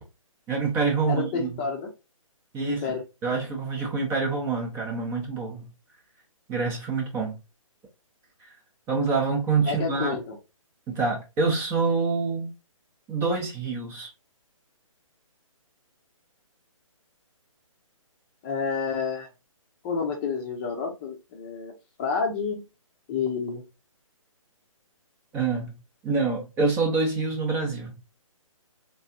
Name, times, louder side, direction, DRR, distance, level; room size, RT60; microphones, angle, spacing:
voice 1, 0.5-1.6 2.5-2.8 3.2-5.7 6.5-7.4 8.9-10.2 10.9-12.5 13.1-14.1 25.3-25.7 26.0-28.0, right 4 dB, 15° right, 0.8 m, -26 dB
voice 2, 1.1-1.9 2.6-3.0 9.6-10.4 18.4-19.3 19.8-21.7 22.0-22.6 23.1-23.6, left 5 dB, 20° left, 0.8 m, -29 dB
3.6 x 3.2 x 2.6 m
figure-of-eight pair, 145°, 18 cm